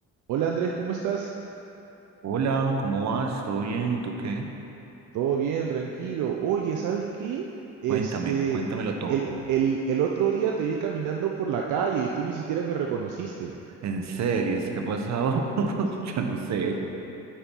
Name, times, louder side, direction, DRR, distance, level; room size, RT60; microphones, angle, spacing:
voice 1, 0.3-1.3 5.1-7.5 7.8-8.6 9.1-9.2 9.5-13.6, right 7 dB, 80° right, 1 dB, 0.6 m, -27 dB
voice 2, 2.2-4.5 7.9-9.2 13.8-16.7, right 4 dB, 65° right, 3 dB, 0.9 m, -28 dB
8.7 x 5.2 x 4.5 m, 3.0 s
cardioid pair, 90°, 30 cm